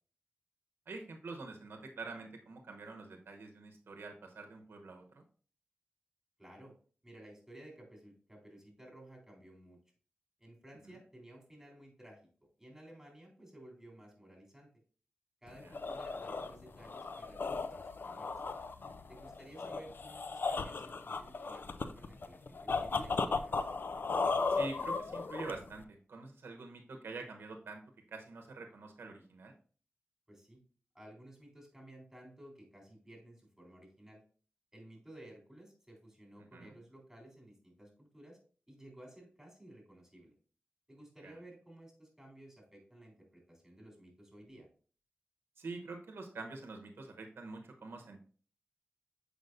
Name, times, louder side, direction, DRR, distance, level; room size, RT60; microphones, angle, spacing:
voice 1, 0.9-5.2 10.8-11.0 15.6-15.7 24.5-27.8 28.1-29.5 36.5-36.8 41.2-41.3 45.6-48.2, right 3 dB, 90° right, 4 dB, 0.9 m, -46 dB
voice 2, 6.4-6.7 7.0-9.8 10.4-12.2 12.6-14.7 15.4-18.3 19.1-23.5 30.3-30.6 30.9-34.2 34.7-38.4 38.7-40.3 40.9-44.7, right 1 dB, 5° right, -1 dB, 3.4 m, -55 dB
sound 1, 15.5-25.8, left 4 dB, 65° left, 0.4 m, -36 dB
7.8 x 5.0 x 2.5 m, 0.41 s
cardioid pair, 55°, 4 cm